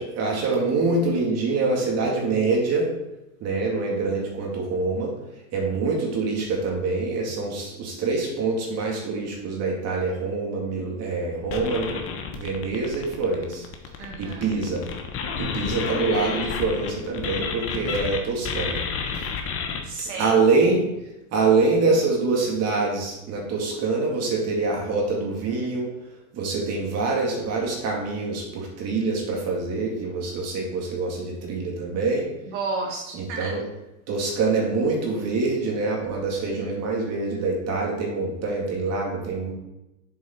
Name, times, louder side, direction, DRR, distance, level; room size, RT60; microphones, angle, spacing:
voice 1, 0.0-2.9 3.4-5.1 5.5-12.1 12.3-13.7 14.2-14.8 15.4-18.8 19.1-19.3 20.2-20.8 21.3-25.9 26.3-32.3 33.1-33.6 34.1-39.5, right 3 dB, 35° right, -1 dB, 2.3 m, -25 dB
sound 1, 11.5-18.2 18.4-19.8, left 6 dB, 30° left, 1.1 m, -30 dB
voice 2, 14.0-14.4 19.8-20.3 32.5-33.6, right 3 dB, 55° right, -1 dB, 1.4 m, -32 dB
7.4 x 4.6 x 4.5 m, 0.92 s
hypercardioid pair, 115°, 42 cm